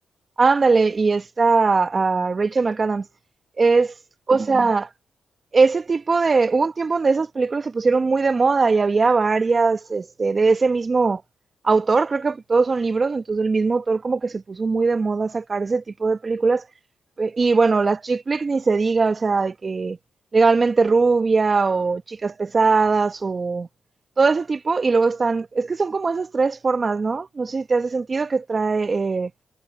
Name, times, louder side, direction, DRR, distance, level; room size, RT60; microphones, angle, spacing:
voice 1, 0.4-3.0 3.6-3.9 4.3-4.9 5.5-11.2 11.6-16.6 17.2-20.0 20.3-23.7 24.2-29.3, right 4 dB, 40° right, 1.2 m, -20 dB
cardioid pair, 65°, 0 cm